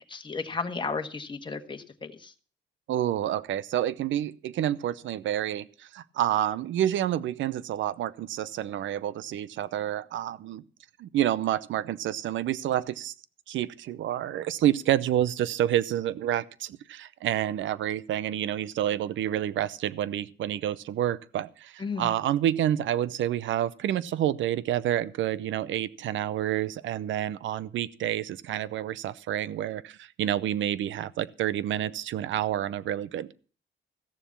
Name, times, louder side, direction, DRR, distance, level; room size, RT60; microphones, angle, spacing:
voice 1, 0.1-2.3 21.8-22.1, left 4 dB, 25° left, 1.5 m, -34 dB
voice 2, 2.9-10.6 11.0-13.1 13.5-33.3, right 11 dB, 75° right, 0.7 m, -28 dB
15.0 x 7.0 x 7.2 m
cardioid pair, 90°, 20 cm